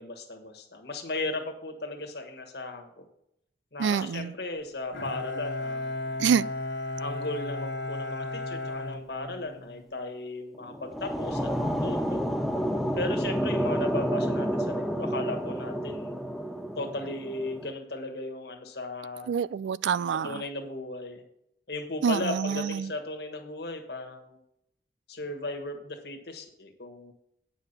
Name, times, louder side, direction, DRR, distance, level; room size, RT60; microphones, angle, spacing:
voice 1, 0.0-3.0 3.7-6.2 7.0-12.2 13.0-16.2 16.7-19.3 20.2-21.2 21.7-24.4 25.1-27.1, left 2 dB, 60° left, 1.6 m, -36 dB
voice 2, 3.8-4.3 6.2-6.5 19.3-20.4 22.0-22.9, right 7 dB, 80° right, 0.3 m, -26 dB
Bowed string instrument, 4.9-9.8, left 2 dB, 80° left, 1.5 m, -34 dB
sound 1, 10.5-17.7, equal, ahead, 0.5 m, -30 dB
9.1 x 5.7 x 6.7 m
head